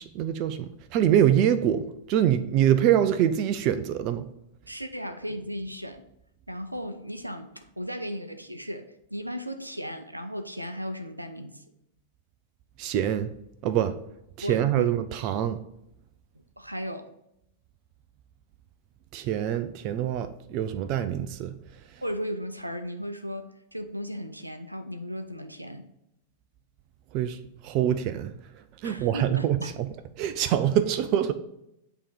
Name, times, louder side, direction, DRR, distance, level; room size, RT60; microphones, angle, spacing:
voice 1, 0.0-4.3 12.8-13.3 13.6-13.9 14.4-15.6 19.1-21.5 27.1-27.4 27.6-28.3 28.8-29.9 30.2-31.3, right 10 dB, 40° right, 0.4 m, -25 dB
voice 2, 4.7-6.0 6.5-11.6 14.4-14.9 16.6-17.1 21.0-21.1 22.0-23.5 23.7-25.9 28.8-29.7, equal, 90° right, 0.5 m, -36 dB
8.4 x 3.0 x 5.0 m
figure-of-eight pair, 95°, 0 cm